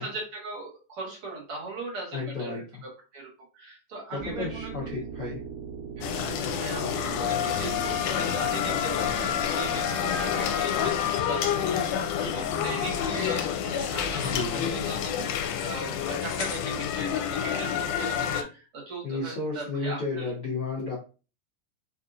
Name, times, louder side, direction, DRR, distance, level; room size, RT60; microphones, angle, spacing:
voice 1, 0.0-5.0 6.0-11.4 12.2-20.3, right 3 dB, 50° right, -3 dB, 2.1 m, -39 dB
voice 2, 2.1-2.6 4.1-5.4 14.2-14.7 19.0-21.0, left 3 dB, 65° left, -6 dB, 1.0 m, -32 dB
sound 1, 4.2-13.7, right 6 dB, 75° right, 1.5 m, -41 dB
sound 2, 6.0-18.4, left 8 dB, 85° left, 2.1 m, -28 dB
4.8 x 2.7 x 2.5 m, 0.33 s
omnidirectional pair, 3.6 m